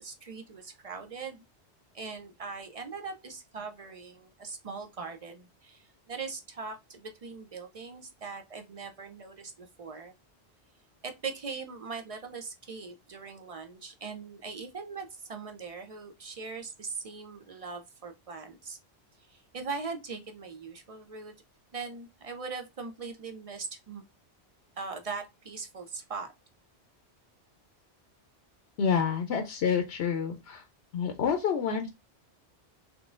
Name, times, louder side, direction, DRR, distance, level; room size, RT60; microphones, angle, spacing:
voice 1, 0.0-1.4 1.9-10.1 11.0-18.8 19.3-21.3 21.7-24.0 24.8-26.3, right 4 dB, 45° right, 0.5 m, -40 dB
voice 2, 28.8-30.6 30.9-31.9, left 6 dB, 70° left, 0.8 m, -28 dB
3.7 x 3.4 x 2.4 m
omnidirectional pair, 1.1 m